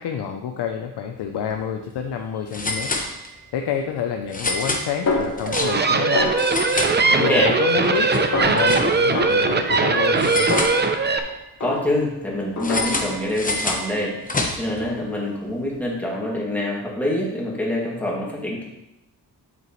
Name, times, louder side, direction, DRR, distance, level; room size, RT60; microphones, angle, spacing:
voice 1, 0.0-2.9 3.5-6.4 7.1-10.5, left 8 dB, 85° left, 4 dB, 0.7 m, -28 dB
sound 1, 1.3-1.5 1.8-1.9 2.5-3.6 4.3-6.0 6.3-7.5 7.8-9.2 10.2-11.3 12.6-14.8, left 2 dB, 20° left, 1.0 m, -28 dB
Snare drum, 5.1-5.9 6.1-6.7 7.2-8.0 8.3-8.7 9.1-11.2 11.6-12.1 12.6-13.2, left 3 dB, 45° left, 1.8 m, -28 dB
sound 2, 5.4-11.2, right 4 dB, 25° right, 0.6 m, -20 dB
voice 2, 7.1-7.5 11.6-18.6, left 1 dB, 5° left, -5 dB, 2.3 m, -25 dB
7.9 x 7.8 x 3.1 m, 0.89 s
wide cardioid pair, 120°, 39 cm